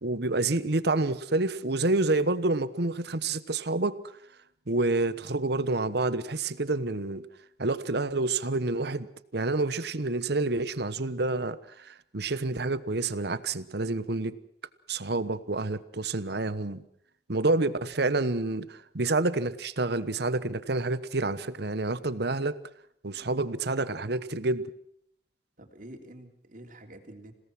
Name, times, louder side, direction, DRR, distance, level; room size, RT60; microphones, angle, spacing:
voice 1, 0.0-4.1 4.7-7.2 7.6-9.1 9.3-14.4 14.9-16.8 17.3-22.6 23.0-24.7, right 2 dB, 65° right, 15 dB, 1.2 m, -28 dB
voice 2, 25.6-27.3, right 1 dB, 50° right, 4 dB, 3.4 m, -48 dB
27.5 x 17.5 x 6.1 m, 0.70 s
head